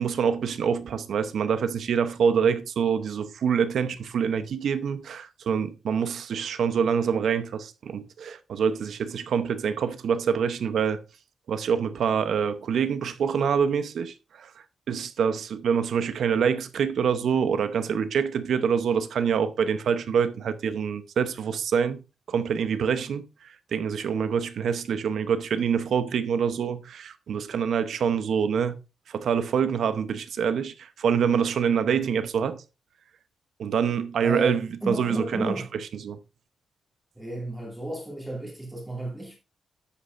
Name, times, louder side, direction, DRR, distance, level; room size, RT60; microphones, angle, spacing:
voice 1, 0.0-11.0 11.5-14.5 14.9-22.0 22.3-28.8 29.1-32.6 33.6-35.5 36.0-36.2, right 7 dB, 65° right, 0.8 m, -26 dB
voice 2, 34.2-35.7 37.2-39.4, right 1 dB, 5° right, 2.4 m, -33 dB
10.0 x 8.5 x 2.6 m
wide cardioid pair, 155°, 0 cm